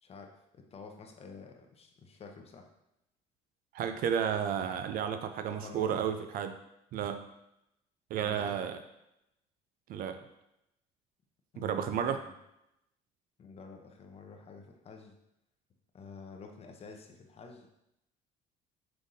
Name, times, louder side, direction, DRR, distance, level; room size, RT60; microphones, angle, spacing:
voice 1, 0.0-2.7 5.5-6.0 8.2-8.6 11.5-12.3 13.4-15.2 15.9-17.7, left 4 dB, 35° left, 4 dB, 0.7 m, -49 dB
voice 2, 3.7-6.6 6.9-7.3 8.1-8.8 9.9-10.2 11.6-12.2, right 8 dB, 60° right, 8 dB, 0.4 m, -32 dB
5.5 x 3.5 x 2.7 m, 0.85 s
supercardioid pair, 85°, 17 cm